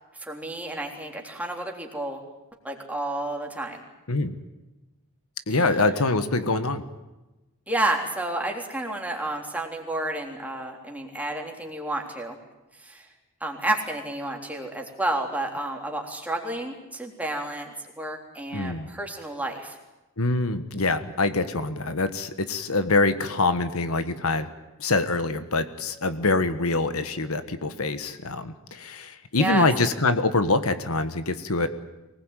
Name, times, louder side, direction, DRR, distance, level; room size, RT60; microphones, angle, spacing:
voice 1, 0.2-2.2 2.6-3.8 5.5-5.6 7.7-12.4 12.8-13.1 13.4-19.8 29.4-29.7, right 1 dB, 5° right, 1 dB, 3.6 m, -30 dB
voice 2, 5.5-6.8 18.5-18.9 20.2-24.5 24.8-31.7, left 3 dB, 75° left, 11 dB, 1.5 m, -25 dB
24.5 x 20.0 x 9.2 m, 1.0 s
head